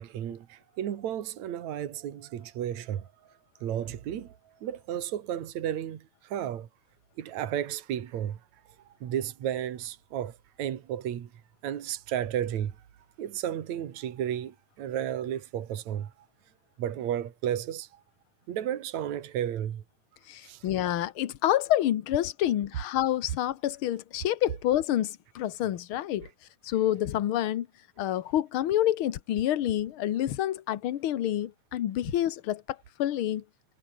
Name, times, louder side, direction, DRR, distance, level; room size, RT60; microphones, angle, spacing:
voice 1, 0.0-3.1 3.6-6.7 7.2-8.4 9.0-11.3 11.6-12.8 13.2-16.1 16.8-18.0 18.5-19.8 20.4-20.6 21.0-21.1, right 10 dB, 70° right, 3.0 m, -33 dB
voice 2, 20.3-26.3 26.6-27.7 28.0-33.4, left 12 dB, 60° left, 1.6 m, -28 dB
omnidirectional pair, 3.4 m